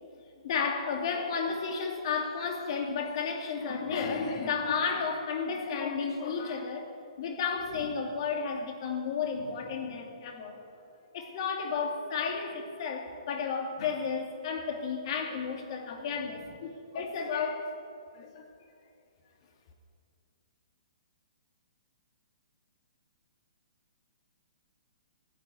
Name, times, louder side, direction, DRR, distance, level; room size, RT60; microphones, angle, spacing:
voice 1, 0.4-6.8 7.2-10.6 11.1-17.6 18.1-18.5, left 5 dB, 50° left, 2 dB, 2.6 m, -32 dB
15.5 x 8.9 x 9.6 m, 2.3 s
hypercardioid pair, 145°, 3 cm